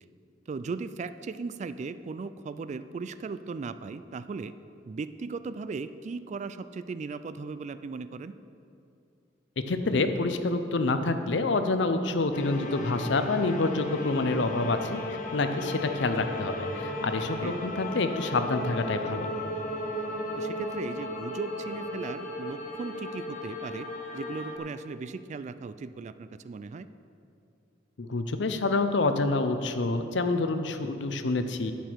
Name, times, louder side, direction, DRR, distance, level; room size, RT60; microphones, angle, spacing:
voice 1, 0.5-4.5 4.9-8.3 17.4-17.6 20.4-23.9 24.1-26.9, right 4 dB, 40° right, 13 dB, 0.3 m, -37 dB
voice 2, 9.7-15.1 15.3-19.3 28.0-31.7, left 3 dB, 70° left, 9 dB, 0.6 m, -27 dB
sound 1, 12.3-24.6, left 1 dB, 45° left, 0.9 m, -35 dB
10.0 x 8.5 x 4.6 m, 2.6 s
head